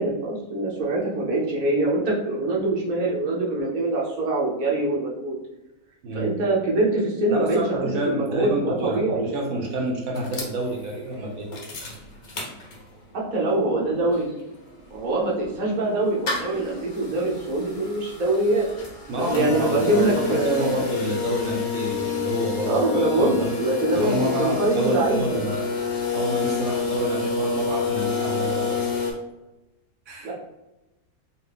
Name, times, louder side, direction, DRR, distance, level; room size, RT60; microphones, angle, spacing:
voice 1, 0.0-5.3 6.1-9.3 13.1-14.3 14.9-18.7 19.3-20.9 22.6-25.4 30.2-30.3, right 2 dB, 50° right, -4 dB, 0.6 m, -24 dB
voice 2, 7.3-11.5 19.1-23.6 23.9-25.7 26.1-28.9 30.1-30.3, right 1 dB, 70° right, 0 dB, 0.9 m, -28 dB
sound 1, 10.1-13.1 13.5-13.6 13.8-29.1, left 5 dB, 60° left, 0.5 m, -29 dB
2.7 x 2.5 x 3.4 m, 1.0 s
omnidirectional pair, 1.7 m